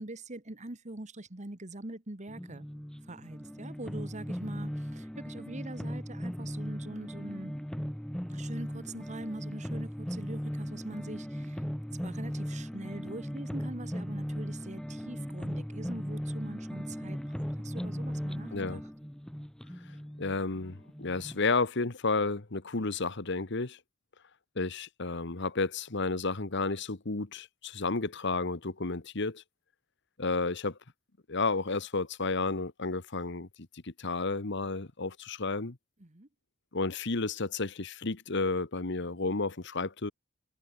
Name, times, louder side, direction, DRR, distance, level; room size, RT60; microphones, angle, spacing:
voice 1, 0.0-2.7 3.1-7.5 8.3-11.6 12.0-18.8 36.0-36.3, right 2 dB, 35° right, 1.7 m, -43 dB
sound 1, 2.3-21.4, equal, 5° left, 0.7 m, -38 dB
voice 2, 20.2-23.8 24.5-29.4 30.2-30.8 31.3-33.5 33.8-35.8 36.7-40.1, left 3 dB, 60° left, 1.4 m, -32 dB
head